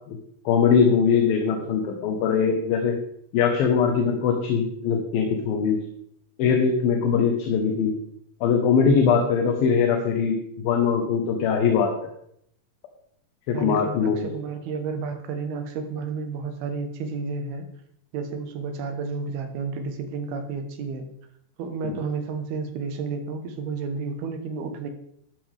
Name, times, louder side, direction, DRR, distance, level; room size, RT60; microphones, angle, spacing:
voice 1, 0.5-2.9 3.3-5.8 6.4-7.9 8.4-11.9 13.5-14.3 21.8-22.0, left 6 dB, 70° left, 3 dB, 3.0 m, -21 dB
voice 2, 13.5-17.6 18.1-21.1 21.6-24.9, right 4 dB, 80° right, 6 dB, 3.3 m, -31 dB
12.5 x 12.5 x 3.5 m, 0.70 s
omnidirectional pair, 4.5 m